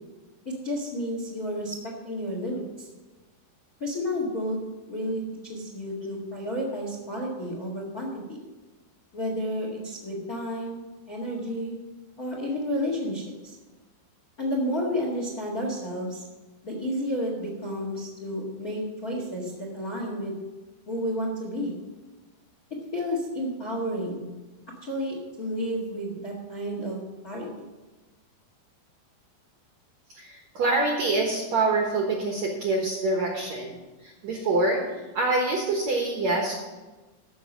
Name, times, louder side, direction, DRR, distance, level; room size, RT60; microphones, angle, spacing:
voice 1, 0.4-2.9 3.8-4.6 4.9-8.4 9.1-11.8 12.2-13.5 14.4-16.2 16.6-20.4 20.9-21.8 22.9-24.3 24.8-27.0 27.2-27.7, equal, 35° left, -1 dB, 1.5 m, -31 dB
voice 2, 30.1-34.8 35.1-36.5, right 2 dB, 60° right, 0 dB, 1.9 m, -26 dB
14.0 x 6.2 x 6.2 m, 1.2 s
omnidirectional pair, 4.8 m